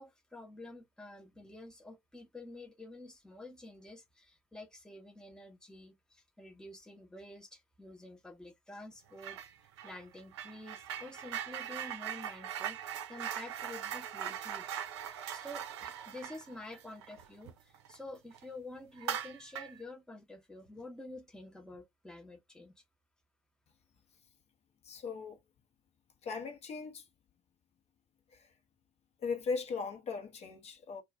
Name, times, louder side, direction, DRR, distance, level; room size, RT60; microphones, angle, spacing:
voice 1, 0.0-22.7, left 1 dB, 5° left, 0.9 m, -49 dB
sound 1, 9.2-9.5 9.8-18.0 18.3-18.4 19.0-19.8, right 9 dB, 80° right, 0.5 m, -41 dB
voice 2, 24.8-25.4 26.2-27.1 28.3-28.5 29.2-31.0, left 4 dB, 50° left, 1.0 m, -38 dB
2.4 x 2.4 x 3.3 m
hypercardioid pair, 60°, 14 cm